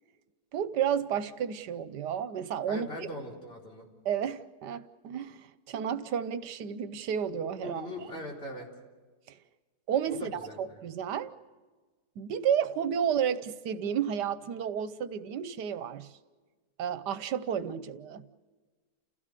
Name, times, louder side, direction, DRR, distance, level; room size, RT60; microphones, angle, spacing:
voice 1, 0.5-2.9 4.0-7.9 9.3-9.4 9.9-11.3 12.2-16.1 16.8-18.2, right 8 dB, 85° right, 14 dB, 1.4 m, -31 dB
voice 2, 2.6-3.8 7.6-8.7 10.1-10.8, equal, 35° left, -2 dB, 4.3 m, -40 dB
30.0 x 16.5 x 6.8 m, 1.4 s
omnidirectional pair, 1.8 m